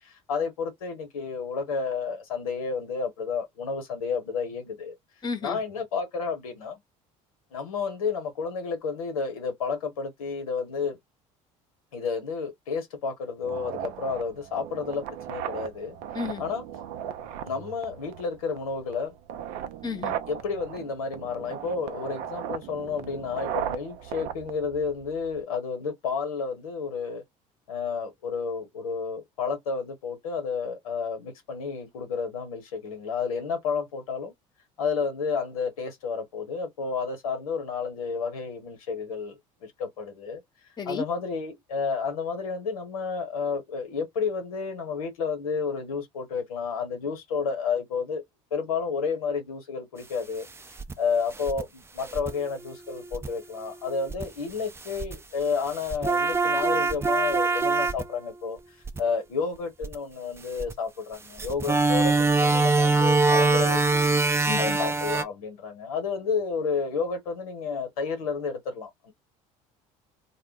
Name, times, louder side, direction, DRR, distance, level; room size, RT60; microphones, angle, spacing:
voice 1, 0.0-4.9 5.4-6.8 7.5-11.0 11.9-16.0 16.4-16.7 17.4-19.2 20.3-27.2 27.7-34.3 34.8-40.4 40.8-48.2 48.5-50.4 51.0-58.6 59.0-64.1 64.6-69.1, left 5 dB, 90° left, 0.9 m, -31 dB
voice 2, 5.2-5.6 16.1-16.4 19.8-20.2 40.8-41.0 64.5-64.8, left 5 dB, 25° left, 0.9 m, -32 dB
sound 1, 13.4-25.4, right 9 dB, 65° right, 0.5 m, -37 dB
sound 2, 50.8-50.9 51.4-51.6 52.1-54.3 55.0-55.2 55.9-58.3 58.9-59.0 59.8-60.0 60.6-60.7 61.4-65.2, right 3 dB, 15° right, 0.4 m, -24 dB
2.1 x 2.0 x 3.6 m
hypercardioid pair, 70°, 18 cm